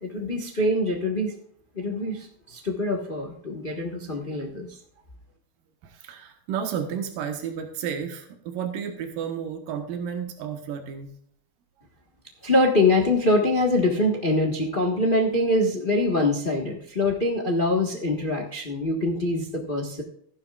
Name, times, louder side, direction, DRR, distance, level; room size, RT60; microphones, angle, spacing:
voice 1, 0.0-1.3 1.7-4.8 12.4-20.0, left 2 dB, 65° left, 1 dB, 0.5 m, -24 dB
voice 2, 5.8-11.1, right 8 dB, 85° right, 4 dB, 3.0 m, -32 dB
15.0 x 11.5 x 2.5 m, 0.66 s
omnidirectional pair, 3.8 m